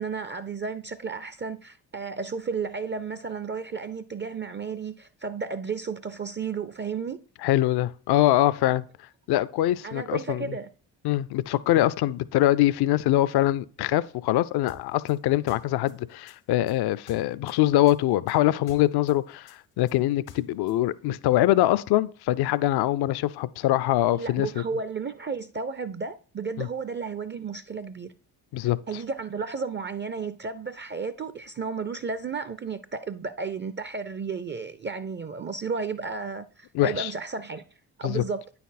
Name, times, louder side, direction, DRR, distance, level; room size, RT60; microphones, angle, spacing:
voice 1, 0.0-7.2 9.8-10.7 24.1-28.1 28.9-37.6 38.0-38.4, right 5 dB, 25° right, 0.4 m, -33 dB
voice 2, 7.4-8.8 9.3-10.6 11.0-24.6 26.6-26.7 28.5-28.8 36.7-37.1 38.0-38.2, left 14 dB, 60° left, 0.5 m, -23 dB
sound 1, 14.7-17.6 17.9-20.8, left 7 dB, 85° left, 1.2 m, -49 dB
9.1 x 4.2 x 4.1 m
hypercardioid pair, 45°, 46 cm